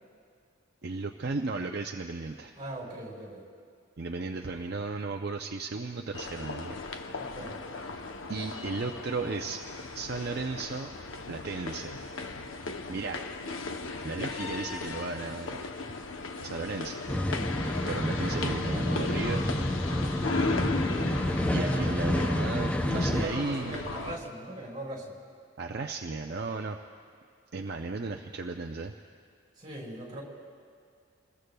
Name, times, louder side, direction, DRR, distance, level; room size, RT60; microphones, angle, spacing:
voice 1, 0.8-2.5 4.0-6.8 8.3-9.6 9.9-10.9 11.3-12.0 12.5-13.2 14.0-15.6 16.4-17.0 17.5-17.6 17.9-19.5 21.5-23.9 25.6-26.8 27.5-28.9, right 3 dB, 55° right, 3 dB, 0.5 m, -35 dB
voice 2, 2.6-3.4 7.2-7.5 21.3-21.8 22.9-25.1 29.6-30.2, right 1 dB, 25° right, -3 dB, 4.7 m, -39 dB
sound 1, 6.1-24.2, left 3 dB, 85° left, 0.8 m, -36 dB
sound 2, 17.1-23.3, left 1 dB, 5° left, 0.4 m, -29 dB
27.0 x 21.0 x 2.3 m, 2.2 s
head